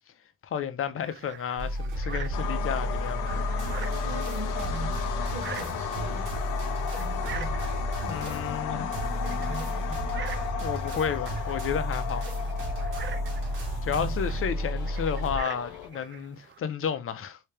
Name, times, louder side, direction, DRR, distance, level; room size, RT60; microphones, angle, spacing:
voice 1, 0.4-3.5 8.1-8.9 10.6-12.3 13.8-17.4, left 8 dB, 45° left, 0.6 m, -32 dB
sound 1, 1.0-16.6, right 8 dB, 40° right, 0.5 m, -45 dB
sound 2, 1.6-15.4, equal, 85° right, 1.4 m, -32 dB
sound 3, 2.3-15.9, left 9 dB, 85° left, 0.6 m, -36 dB
voice 2, 3.9-6.3 6.9-7.6 8.0-10.1 13.9-14.4, right 4 dB, 65° right, 1.1 m, -42 dB
3.2 x 2.8 x 3.2 m
cardioid pair, 90°, 30 cm